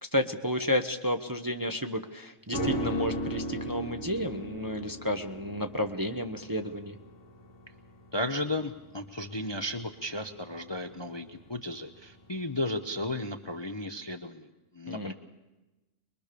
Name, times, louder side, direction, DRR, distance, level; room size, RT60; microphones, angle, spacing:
voice 1, 0.0-7.0 14.9-15.1, equal, 20° right, 6 dB, 0.8 m, -31 dB
sound 1, 2.5-11.9 12.2-12.3, equal, 75° left, 2.6 m, -37 dB
voice 2, 8.1-14.5 14.7-15.1, left 1 dB, 25° left, 7 dB, 0.7 m, -34 dB
24.0 x 21.5 x 6.8 m, 1.1 s
omnidirectional pair, 1.4 m